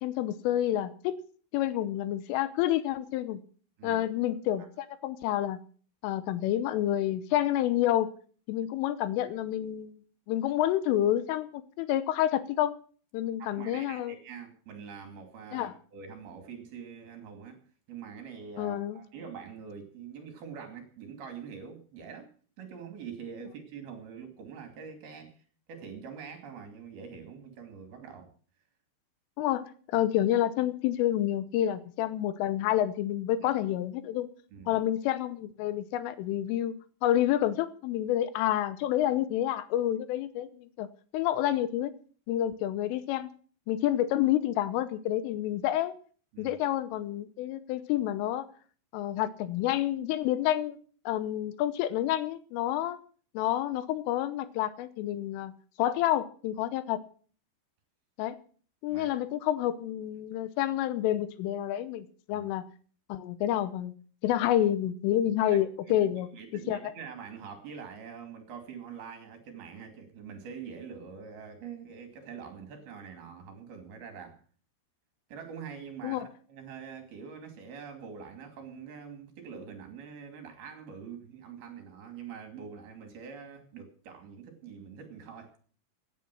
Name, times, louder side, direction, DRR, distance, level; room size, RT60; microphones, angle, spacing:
voice 1, 0.0-1.2 1.5-3.4 3.8-5.6 6.0-8.1 8.5-10.0 10.3-12.8 13.1-14.2 15.5-15.7 18.6-19.0 29.4-34.3 34.7-36.7 37.0-41.9 42.3-43.3 43.7-45.9 46.4-48.5 48.9-50.8 51.1-53.0 53.3-55.5 55.8-57.0 58.2-58.4 58.8-62.6 63.1-63.9 64.2-66.3 66.7-66.9 76.0-76.3, left 12 dB, 80° left, 13 dB, 3.4 m, -29 dB
voice 2, 13.4-17.6 17.9-22.3 22.6-25.4 25.7-28.3 34.5-34.8 46.3-46.5 58.9-59.2 62.3-62.5 65.5-65.6 65.9-66.0 66.3-74.4 75.3-85.5, right 6 dB, 55° right, 5 dB, 4.1 m, -44 dB
17.0 x 10.0 x 6.2 m, 0.43 s
omnidirectional pair, 5.8 m